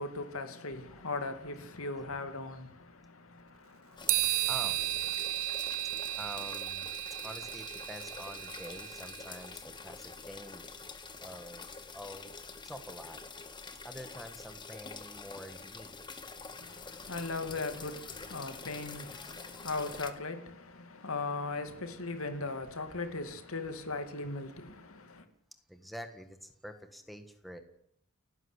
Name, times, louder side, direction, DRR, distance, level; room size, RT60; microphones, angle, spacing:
voice 1, 0.0-4.5 16.6-25.2, left 3 dB, 90° left, 2.6 m, -39 dB
sound 1, 4.0-20.1, left 4 dB, 20° left, 1.7 m, -46 dB
sound 2, 4.1-9.4, right 17 dB, 85° right, 0.9 m, -34 dB
voice 2, 4.5-4.8 6.1-6.9 7.2-10.6 11.2-11.7 11.9-12.3 12.6-13.2 13.8-15.9 19.1-19.7 25.7-27.6, equal, ahead, 1.6 m, -47 dB
30.0 x 11.0 x 8.2 m
head